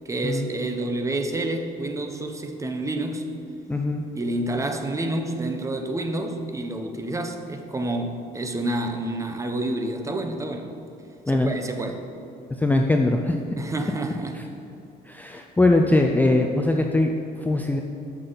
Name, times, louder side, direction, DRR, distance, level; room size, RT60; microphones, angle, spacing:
voice 1, 0.0-3.3 4.1-10.7 11.3-12.0 13.6-14.4 15.8-15.9, right 2 dB, 20° right, 5 dB, 0.8 m, -29 dB
voice 2, 3.7-4.0 11.2-11.5 12.6-13.4 14.3-14.4 15.1-17.8, left 2 dB, 10° left, 3 dB, 0.5 m, -21 dB
13.0 x 6.0 x 4.0 m, 2.7 s
cardioid pair, 110°, 17 cm